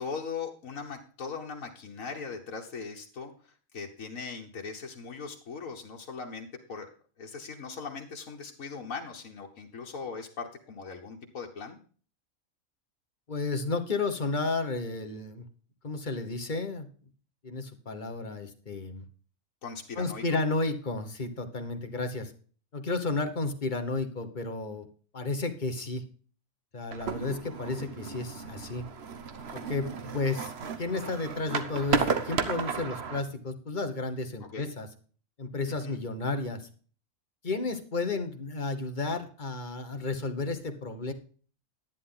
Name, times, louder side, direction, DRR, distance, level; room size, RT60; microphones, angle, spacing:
voice 1, 0.0-6.9 7.2-11.8 19.6-20.4 34.4-34.7 35.8-36.0, left 5 dB, 85° left, 0 dB, 1.7 m, -39 dB
voice 2, 13.3-15.4 15.8-16.9 17.4-19.0 20.0-22.3 22.7-24.9 25.1-26.0 26.7-28.8 29.5-30.5 30.8-34.9 35.4-36.6 37.4-41.1, left 3 dB, 35° left, 7 dB, 1.4 m, -32 dB
sound 1, 26.9-33.2, right 5 dB, 55° right, 1.2 m, -33 dB
10.5 x 10.5 x 3.9 m, 0.42 s
omnidirectional pair, 1.4 m